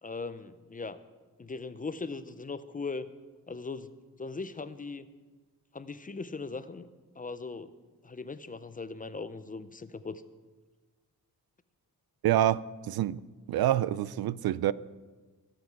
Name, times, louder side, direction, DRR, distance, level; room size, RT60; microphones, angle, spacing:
voice 1, 0.0-1.0 1.4-3.1 3.5-3.9 4.2-5.1 5.7-6.9 7.2-7.7 8.0-10.2, left 4 dB, 25° left, 0.5 m, -39 dB
voice 2, 12.2-13.2 13.5-14.7, right 12 dB, 75° right, 0.5 m, -27 dB
22.5 x 7.6 x 4.7 m
wide cardioid pair, 130°, 37 cm